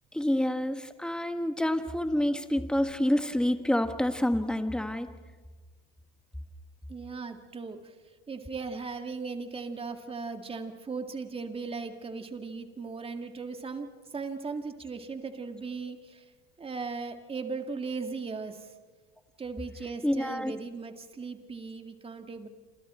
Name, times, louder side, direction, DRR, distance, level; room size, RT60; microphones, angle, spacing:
voice 1, 0.1-5.1 20.0-20.5, left 1 dB, 5° left, 7 dB, 1.6 m, -28 dB
voice 2, 6.9-7.9 8.3-13.9 14.1-16.3 16.6-18.7 19.4-22.5, right 4 dB, 20° right, 6 dB, 2.1 m, -37 dB
28.0 x 28.0 x 4.4 m, 1.4 s
supercardioid pair, 125°, 30 cm